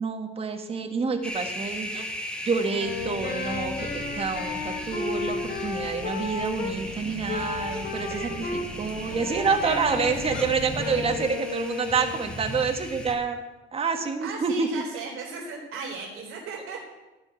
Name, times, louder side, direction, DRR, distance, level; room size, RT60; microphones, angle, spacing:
voice 1, 0.0-2.0 2.4-8.4 8.8-13.4 13.7-14.8, right 5 dB, 30° right, 4 dB, 1.5 m, -28 dB
sound 1, 1.2-13.1, equal, 5° left, 1.3 m, -38 dB
Wind instrument woodwind instrument, 2.6-6.8 7.3-8.7 9.1-12.3, left 3 dB, 50° left, 3.9 m, -33 dB
sound 2, 2.8-11.2, left 3 dB, 80° left, 2.7 m, -41 dB
voice 2, 8.1-8.5 10.1-10.3 14.2-16.8, right 4 dB, 80° right, -1 dB, 3.7 m, -37 dB
15.0 x 5.4 x 9.6 m, 1.1 s
cardioid pair, 165°, 21 cm